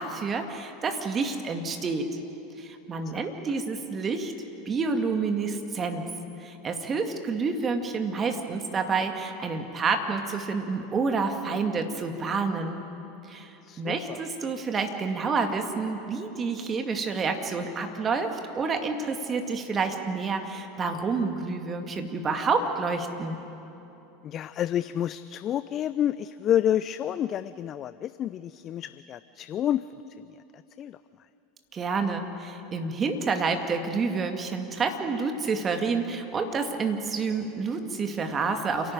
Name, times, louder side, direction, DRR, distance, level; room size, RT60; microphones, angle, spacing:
voice 1, 0.0-2.1 2.6-4.3 4.7-6.1 6.4-12.8 13.3-23.4 31.7-38.9, right 4 dB, 30° right, 5 dB, 2.2 m, -29 dB
voice 2, 13.6-14.2 24.2-29.8 30.2-31.0, left 10 dB, 40° left, 14 dB, 0.4 m, -29 dB
28.5 x 11.5 x 9.1 m, 3.0 s
figure-of-eight pair, 80°, 0 cm